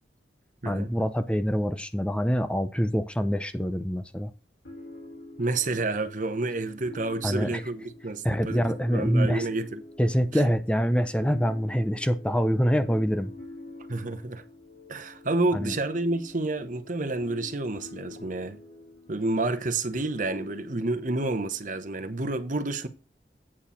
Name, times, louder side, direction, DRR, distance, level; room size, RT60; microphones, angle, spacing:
voice 1, 0.7-4.3 7.2-7.6 8.2-9.5 10.0-13.3 15.5-15.7, equal, 5° left, 0.6 m, -25 dB
sound 1, 4.6-22.1, left 2 dB, 70° left, 4.2 m, -46 dB
voice 2, 5.4-9.8 10.3-10.5 13.9-14.4 14.9-18.6 19.1-22.9, right 2 dB, 45° right, 1.1 m, -29 dB
8.7 x 4.7 x 5.7 m
head